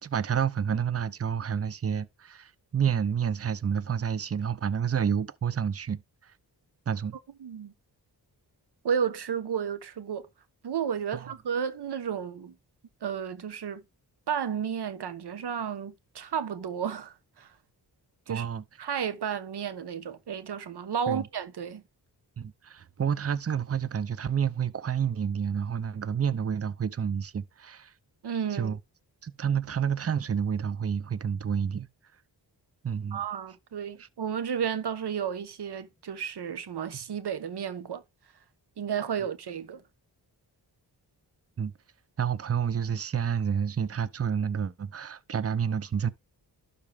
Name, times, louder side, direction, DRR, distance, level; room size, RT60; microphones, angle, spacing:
voice 1, 0.0-6.3 6.9-7.2 11.1-11.3 18.3-18.6 21.1-21.3 22.4-27.9 28.5-28.8 29.2-31.9 32.8-33.2 34.0-34.1 41.6-41.7 42.2-46.1, right 7 dB, 35° right, 0.7 m, -29 dB
voice 2, 7.4-7.7 8.8-10.3 10.6-12.5 13.0-13.8 14.3-17.5 18.3-18.5 18.8-21.8 28.2-28.7 33.1-38.0 38.8-39.8, right 7 dB, 75° right, 1.2 m, -32 dB
12.0 x 4.3 x 3.4 m
cardioid pair, 75°, 40 cm